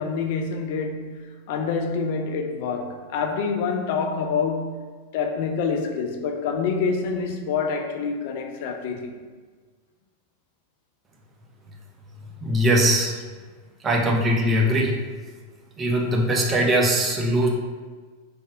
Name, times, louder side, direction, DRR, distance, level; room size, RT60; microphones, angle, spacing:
voice 1, 0.0-4.8 5.1-9.2, left 5 dB, 50° left, 0.3 m, -27 dB
voice 2, 12.4-13.1 13.8-14.9 15.8-17.5, equal, 20° right, 0.5 m, -21 dB
3.2 x 2.6 x 2.4 m
figure-of-eight pair, 90°, 0 cm